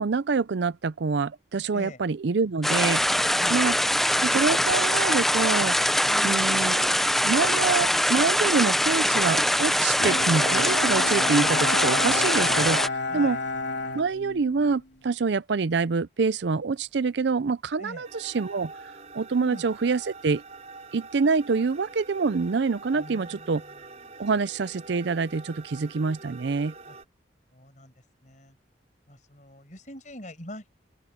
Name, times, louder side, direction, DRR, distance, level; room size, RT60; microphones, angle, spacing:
voice 1, 0.0-3.0 3.5-3.7 4.2-5.8 6.2-6.9 7.2-12.8 13.1-13.4 13.9-18.7 19.1-20.4 20.9-23.6 24.2-26.7, right 4 dB, 70° right, 0.5 m, -26 dB
sound 1, 2.6-12.9, equal, ahead, 0.6 m, -23 dB
voice 2, 6.1-6.8 13.1-13.4 17.8-18.0 19.4-19.7 22.9-23.8 26.9-27.0 27.5-27.9 28.2-28.6 29.1-30.7, left 1 dB, 40° left, 6.3 m, -43 dB
Bowed string instrument, 10.0-14.8, left 3 dB, 70° left, 3.6 m, -31 dB
sound 2, 18.0-27.0, right 3 dB, 35° right, 5.8 m, -45 dB
open air
head